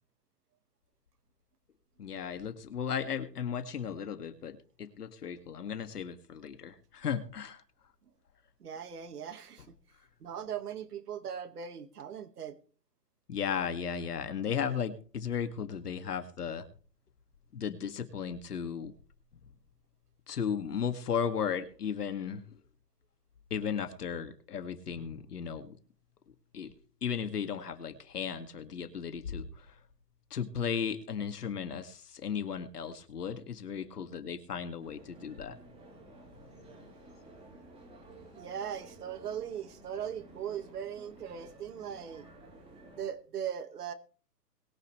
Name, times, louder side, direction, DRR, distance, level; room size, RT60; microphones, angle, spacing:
voice 1, 2.0-7.6 13.3-16.7 17.5-18.9 20.3-22.4 23.5-25.8 26.5-26.7 27.0-29.7 30.3-35.6, left 7 dB, 70° left, 2.3 m, -35 dB
voice 2, 8.6-9.8 10.2-12.6 38.4-42.3 43.0-43.9, right 8 dB, 65° right, 1.9 m, -39 dB
sound 1, 34.8-43.1, right 2 dB, 10° right, 3.3 m, -53 dB
22.5 x 9.9 x 3.3 m
hypercardioid pair, 155°, 49 cm